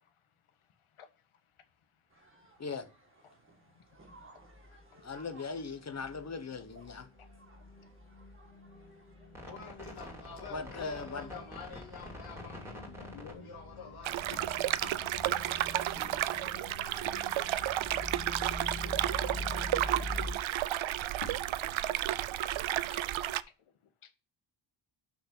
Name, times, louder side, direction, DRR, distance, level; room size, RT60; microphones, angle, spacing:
voice 1, 0.8-1.2 1.6-1.7 3.6-3.8 4.1-4.4 4.9-5.0 10.7-10.8 13.1-13.5 14.3-14.4 14.8-14.9 19.3-19.4 21.2-21.9 22.9-23.1 24.0-24.1, left 7 dB, 80° left, 1.6 m, -51 dB
sound 1, 2.1-19.7, right 2 dB, 25° right, 2.1 m, -61 dB
sound 2, 4.1-4.2 4.5-4.9 5.2-20.3, left 2 dB, 5° right, 2.8 m, -45 dB
voice 2, 5.0-7.1 10.5-11.3, left 4 dB, 30° left, 1.0 m, -39 dB
voice 3, 9.5-14.4, left 5 dB, 50° left, 2.4 m, -48 dB
sound 3, 14.0-23.4, right 13 dB, 70° right, 0.6 m, -32 dB
6.2 x 5.9 x 5.8 m
wide cardioid pair, 160°, 49 cm